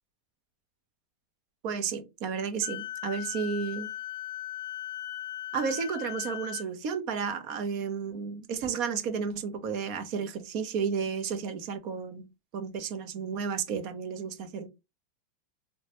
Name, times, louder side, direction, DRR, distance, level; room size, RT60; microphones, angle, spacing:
voice 1, 1.6-3.9 5.5-12.3 12.5-14.7, right 6 dB, 50° right, 0.6 m, -32 dB
Wind instrument woodwind instrument, 2.6-6.7, left 13 dB, 70° left, 0.4 m, -38 dB
3.1 x 2.2 x 2.8 m
supercardioid pair, 140°, 0 cm